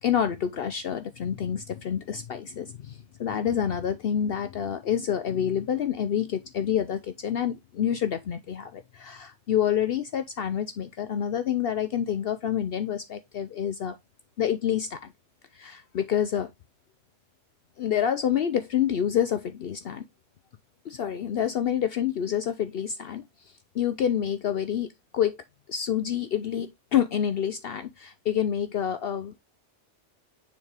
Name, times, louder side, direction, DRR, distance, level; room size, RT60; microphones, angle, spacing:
voice 1, 0.0-14.0 14.4-15.0 15.5-16.5 17.8-20.0 20.9-23.2 23.7-25.4 25.7-29.3, left 9 dB, 60° left, 0.7 m, -28 dB
6.9 x 4.3 x 3.2 m
omnidirectional pair, 1.2 m